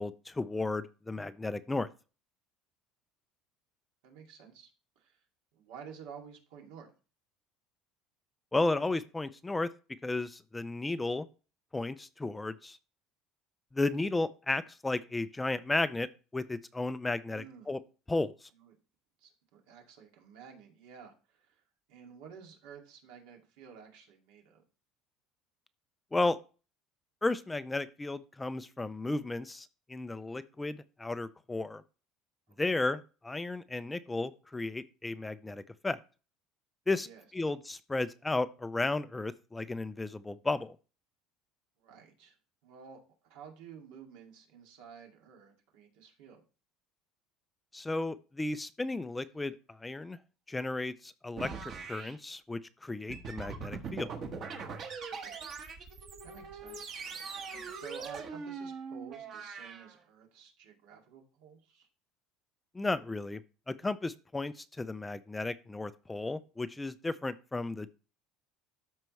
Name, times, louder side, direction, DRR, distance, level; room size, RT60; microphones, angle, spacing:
voice 1, 0.0-1.9 8.5-9.7 10.0-11.3 11.7-12.8 13.7-17.8 18.1-18.5 26.1-26.4 27.2-31.8 32.6-36.0 36.9-37.1 37.3-40.8 47.7-50.2 50.5-54.1 62.7-63.4 63.7-67.9, left 2 dB, 10° left, 13 dB, 0.4 m, -34 dB
voice 2, 4.0-4.7 5.0-5.2 5.5-6.9 17.3-17.7 18.5-18.7 19.2-21.6 21.9-24.6 32.6-32.8 37.0-37.2 41.8-42.3 42.6-46.4 55.2-55.5 56.2-56.9 57.7-61.9, right 7 dB, 85° right, 2 dB, 2.2 m, -52 dB
sound 1, 51.4-52.2 53.1-60.0, right 5 dB, 35° right, 1.2 m, -41 dB
13.0 x 4.6 x 3.1 m, 0.34 s
cardioid pair, 160°, 0 cm